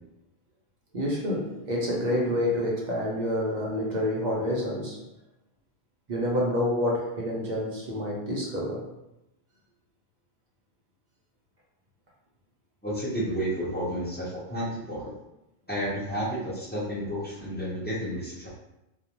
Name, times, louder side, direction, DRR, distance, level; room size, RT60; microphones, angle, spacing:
voice 1, 0.9-5.0 6.1-8.9, left 1 dB, 50° right, -4 dB, 0.6 m, -28 dB
voice 2, 12.8-15.1 15.7-18.5, equal, 10° left, -8 dB, 0.5 m, -31 dB
2.4 x 2.1 x 2.8 m, 0.91 s
omnidirectional pair, 1.2 m